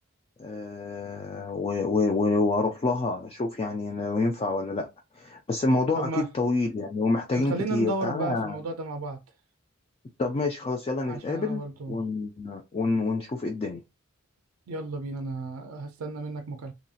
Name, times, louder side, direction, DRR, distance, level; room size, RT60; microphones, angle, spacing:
voice 1, 0.4-4.9 5.2-8.6 10.2-13.8, left 3 dB, 25° left, 0.3 m, -27 dB
voice 2, 6.0-6.3 7.4-9.2 11.1-12.0 14.7-16.7, right 3 dB, 80° right, 0.4 m, -33 dB
2.9 x 2.7 x 2.4 m
head